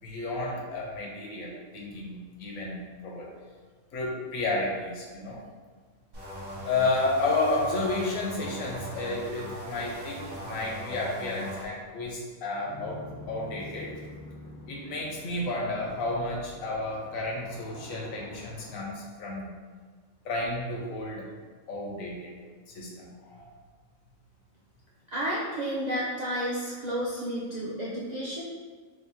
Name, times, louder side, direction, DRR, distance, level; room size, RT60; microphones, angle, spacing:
voice 1, 0.0-3.3 3.9-5.4 6.6-13.9 14.7-19.5 20.2-21.3 21.7-22.3 22.7-23.5, left 2 dB, 75° left, -2 dB, 1.2 m, -32 dB
sound 1, 6.1-11.7, equal, 80° right, 1.5 m, -40 dB
sound 2, 12.6-18.9, left 2 dB, 60° left, 0.7 m, -46 dB
voice 2, 25.1-28.4, equal, 55° right, -7 dB, 0.4 m, -31 dB
3.5 x 2.7 x 3.5 m, 1.5 s
omnidirectional pair, 1.4 m